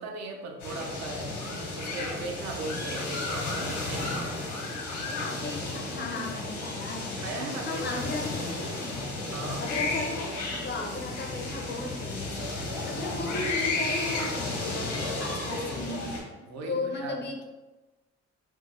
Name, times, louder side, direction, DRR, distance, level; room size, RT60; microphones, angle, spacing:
voice 1, 0.0-1.4 1.8-4.3 7.2-8.1 9.3-9.7 16.4-17.2, right 3 dB, 60° right, 3 dB, 0.6 m, -38 dB
sound 1, 0.6-16.2, left 2 dB, 80° left, 1.0 m, -33 dB
voice 2, 5.0-7.2 7.7-9.0 9.6-12.5 12.8-16.2 16.6-17.4, left 3 dB, 35° left, 2 dB, 0.5 m, -36 dB
3.1 x 2.0 x 3.2 m, 1.1 s
cardioid pair, 90°, 30 cm